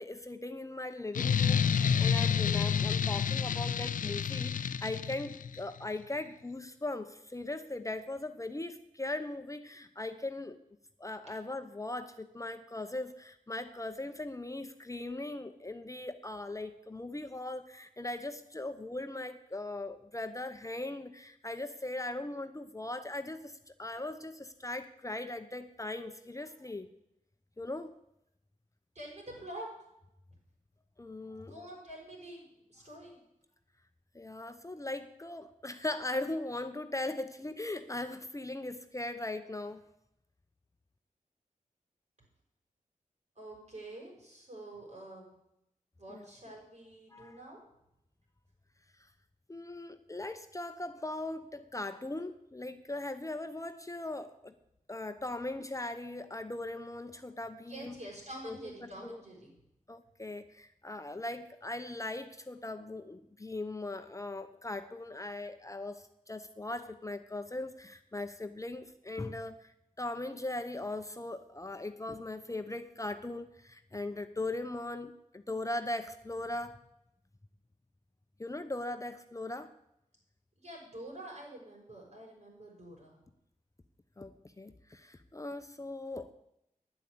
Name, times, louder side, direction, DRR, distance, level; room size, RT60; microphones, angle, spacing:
voice 1, 0.0-10.6 11.0-26.9 27.6-27.9 31.0-31.5 34.1-39.8 46.1-46.2 47.1-47.4 49.5-54.5 54.9-58.0 58.4-59.2 59.9-76.8 78.4-79.7 84.2-86.3, left 2 dB, 20° left, 8 dB, 0.8 m, -39 dB
sound 1, 1.1-5.6, left 7 dB, 70° left, 0.4 m, -29 dB
voice 2, 28.9-29.7 31.4-33.2 43.3-45.3 46.0-47.6 57.6-59.5 80.6-83.2, right 1 dB, 55° right, -2 dB, 6.6 m, -47 dB
10.0 x 8.3 x 8.5 m, 0.81 s
cardioid pair, 60°, 14 cm